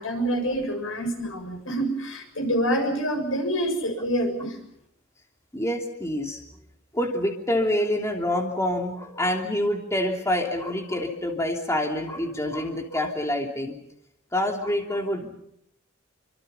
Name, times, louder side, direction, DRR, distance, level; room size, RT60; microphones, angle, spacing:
voice 1, 0.0-4.6, right 1 dB, 85° left, 5 dB, 7.1 m, -26 dB
voice 2, 5.5-6.4 6.9-13.8 14.3-15.4, left 1 dB, 15° left, 2 dB, 3.1 m, -27 dB
28.0 x 25.5 x 5.6 m, 0.73 s
head